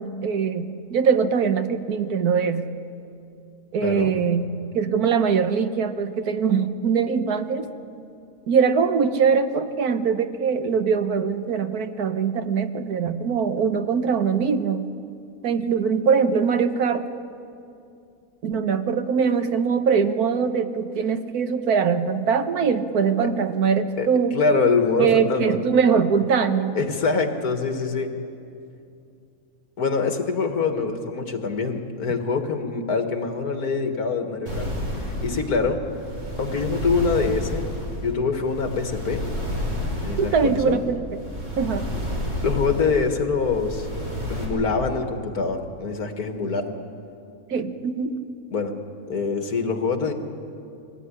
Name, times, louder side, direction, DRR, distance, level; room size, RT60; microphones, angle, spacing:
voice 1, 0.0-2.7 3.7-4.4 4.7-7.7 8.5-14.9 15.4-17.1 18.4-24.4 25.0-26.8 40.2-41.0 41.6-41.9 47.5-48.2, right 6 dB, 80° right, 8 dB, 1.6 m, -22 dB
voice 2, 3.8-4.1 23.2-23.3 24.0-24.1 24.3-25.6 26.7-28.1 29.8-34.7 35.0-35.8 36.4-37.7 38.0-39.2 40.0-40.8 42.4-43.9 44.3-46.8 48.5-48.7 49.1-50.1, left 4 dB, 80° left, 5 dB, 2.2 m, -24 dB
sound 1, 34.5-44.5, equal, 50° right, 5.2 m, -30 dB
24.0 x 17.5 x 9.8 m, 2.6 s
omnidirectional pair, 1.6 m